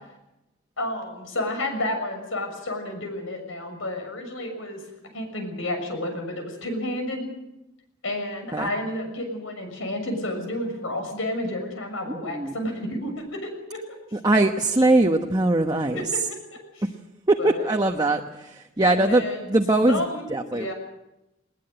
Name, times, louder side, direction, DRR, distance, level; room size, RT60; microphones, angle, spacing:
voice 1, 0.8-4.8 5.1-7.3 8.0-13.8 15.9-16.2 16.7-16.9 17.4-17.6 18.9-19.6 19.9-20.7, left 1 dB, 80° left, 5 dB, 6.5 m, -31 dB
voice 2, 12.1-12.5 14.1-16.0 17.3-18.2 18.8-20.0 20.3-20.7, right 2 dB, 20° right, 3 dB, 1.1 m, -21 dB
20.5 x 19.5 x 8.0 m, 0.94 s
head